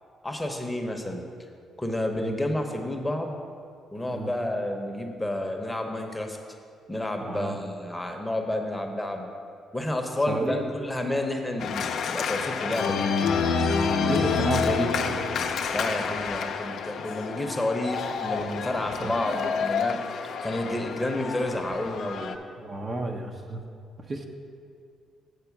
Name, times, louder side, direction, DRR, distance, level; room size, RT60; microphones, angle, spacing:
voice 1, 0.2-1.2 1.8-3.4 3.9-6.4 6.9-9.3 9.7-13.1 15.7-20.0 20.4-22.4, left 1 dB, 10° left, 3 dB, 0.8 m, -30 dB
voice 2, 7.2-7.6 10.3-10.6 13.9-15.3 18.8-19.1 22.6-23.6 24.1-24.3, right 2 dB, 35° right, 3 dB, 0.7 m, -31 dB
Organ, 11.6-22.4, left 5 dB, 70° left, 0.5 m, -28 dB
8.1 x 4.3 x 7.1 m, 2.4 s
cardioid pair, 90°, 0 cm